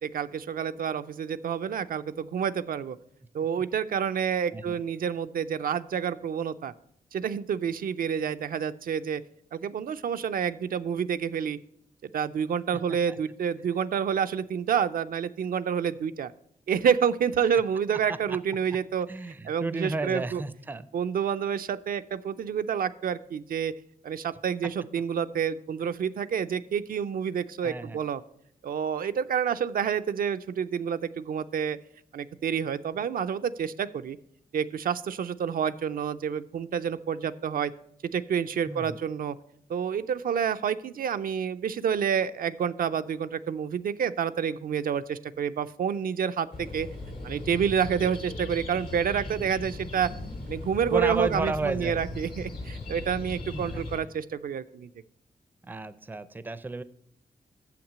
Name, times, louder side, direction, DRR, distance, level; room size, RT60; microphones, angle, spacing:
voice 1, 0.0-3.0 3.3-6.7 7.1-9.2 9.5-11.6 12.1-16.3 16.7-19.1 19.4-20.4 20.9-23.7 24.0-28.2 28.6-31.8 32.1-34.2 34.5-37.7 38.0-39.4 39.7-46.9 47.2-50.1 50.5-54.9, right 7 dB, 75° right, 10 dB, 0.4 m, -28 dB
voice 2, 19.1-20.9 27.6-28.0 38.7-39.0 50.9-52.0 53.5-53.8 55.6-56.8, right 3 dB, 15° right, 14 dB, 0.4 m, -32 dB
sound 1, 46.5-54.0, left 2 dB, 85° left, 2.4 m, -38 dB
7.2 x 5.9 x 7.4 m, 0.70 s
wide cardioid pair, 120°, 15 cm